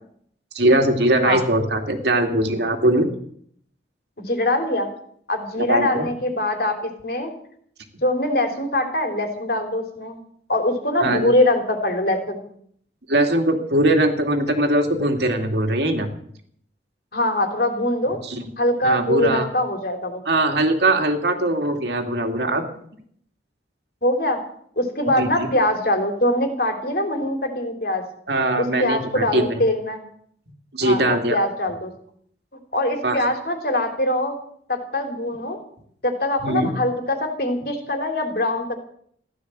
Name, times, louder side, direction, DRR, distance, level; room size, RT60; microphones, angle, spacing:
voice 1, 0.5-3.1 5.7-6.1 11.0-11.3 13.1-16.1 18.3-18.4 18.8-19.5 20.3-22.6 25.2-25.5 28.3-29.5 30.7-31.4 33.0-33.2 36.4-36.7, right 1 dB, 75° right, 4 dB, 2.6 m, -20 dB
voice 2, 4.2-4.9 5.3-6.7 7.0-7.3 8.0-10.2 10.5-12.4 17.1-18.2 18.6-20.2 24.0-24.4 24.7-28.0 28.6-30.0 30.8-31.9 32.7-34.4 34.7-35.6 36.0-38.7, left 1 dB, 55° left, 5 dB, 3.2 m, -23 dB
15.5 x 12.5 x 7.7 m, 0.64 s
head